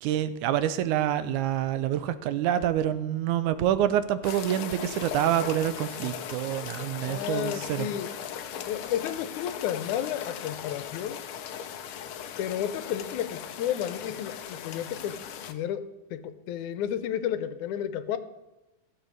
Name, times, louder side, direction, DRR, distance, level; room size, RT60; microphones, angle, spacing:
voice 1, 0.0-7.9, right 11 dB, 85° right, 13 dB, 2.2 m, -27 dB
sound 1, 4.2-15.5, left 9 dB, 75° left, 1.3 m, -38 dB
voice 2, 7.0-8.1 8.7-11.2 12.4-15.2 15.5-15.9 16.1-18.2, left 10 dB, 90° left, 12 dB, 2.2 m, -32 dB
15.0 x 7.6 x 6.4 m, 1.1 s
omnidirectional pair, 3.4 m